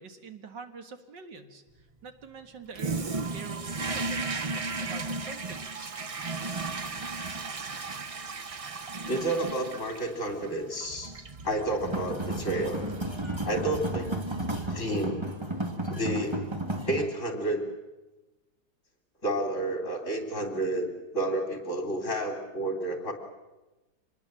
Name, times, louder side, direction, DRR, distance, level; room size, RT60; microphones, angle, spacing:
voice 1, 0.0-3.1 3.3-6.0, right 5 dB, 80° right, 7 dB, 2.4 m, -45 dB
Toilet flush, 2.7-15.1, right 3 dB, 45° right, 0.4 m, -36 dB
voice 2, 9.1-11.1 11.4-12.9 13.4-14.2 14.7-15.3 15.9-16.4 16.9-17.6 19.2-23.1, right 1 dB, 45° left, 5 dB, 3.5 m, -30 dB
sound 1, 11.8-17.0, right 1 dB, 15° right, 1.8 m, -33 dB
26.0 x 20.5 x 7.4 m, 1.1 s
omnidirectional pair, 1.9 m